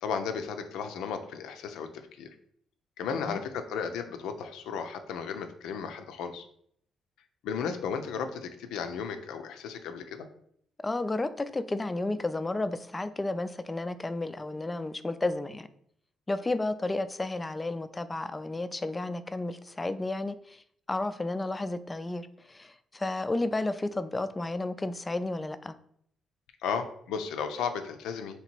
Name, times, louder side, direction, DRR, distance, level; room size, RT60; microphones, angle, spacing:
voice 1, 0.0-2.3 3.0-6.5 7.4-10.3 26.6-28.4, left 6 dB, 90° left, 8 dB, 0.5 m, -34 dB
voice 2, 10.8-15.7 16.3-20.6 20.9-25.8, left 2 dB, 20° left, 12 dB, 0.3 m, -32 dB
3.2 x 2.9 x 4.4 m, 0.67 s
cardioid pair, 90°, 0 cm